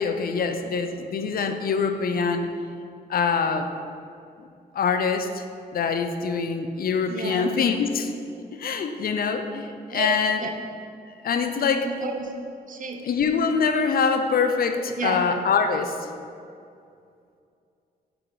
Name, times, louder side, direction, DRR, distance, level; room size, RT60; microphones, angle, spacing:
voice 1, 0.0-2.5 3.1-3.7 4.4-4.5 4.7-5.4 5.7-8.1 8.5-10.4 11.2-11.9 13.0-16.1, left 5 dB, 60° left, 7 dB, 0.5 m, -24 dB
voice 2, 7.1-7.5 9.9-10.1 10.4-10.5 11.8-12.3 12.7-13.1 15.0-15.3, right 4 dB, 50° right, 3 dB, 0.8 m, -31 dB
6.0 x 4.8 x 4.7 m, 2.5 s
cardioid pair, 85°, 17 cm